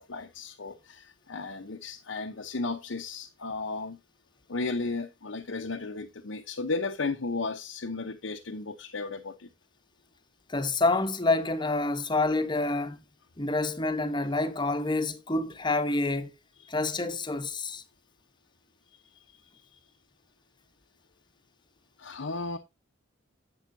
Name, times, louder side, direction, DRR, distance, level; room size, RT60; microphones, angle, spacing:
voice 1, 0.0-4.0 4.5-9.5 16.6-16.7 19.0-19.8 22.0-22.6, left 3 dB, 85° left, 0.9 m, -35 dB
voice 2, 10.5-13.0 13.4-16.3 16.7-17.8, left 2 dB, 25° left, 1.0 m, -27 dB
10.5 x 8.1 x 2.7 m
head